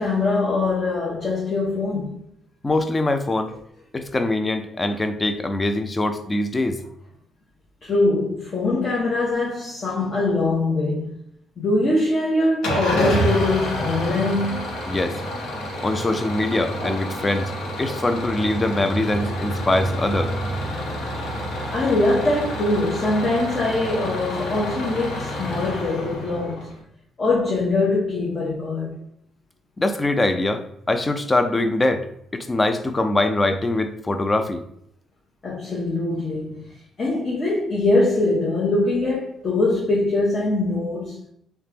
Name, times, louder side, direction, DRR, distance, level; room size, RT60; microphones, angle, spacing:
voice 1, 0.0-2.2 7.8-11.1 11.6-14.7 21.7-26.7 27.2-28.9 35.4-41.2, left 2 dB, 40° left, 0.8 m, -22 dB
voice 2, 2.6-3.5 3.9-6.8 14.9-15.2 15.8-17.5 17.8-20.3 29.8-32.1 32.3-34.6, left 2 dB, 25° left, 0.4 m, -23 dB
Engine starting / Idling, 12.6-26.8, equal, 80° left, 0.8 m, -28 dB
3.3 x 2.1 x 2.9 m
cardioid pair, 90°, 0 cm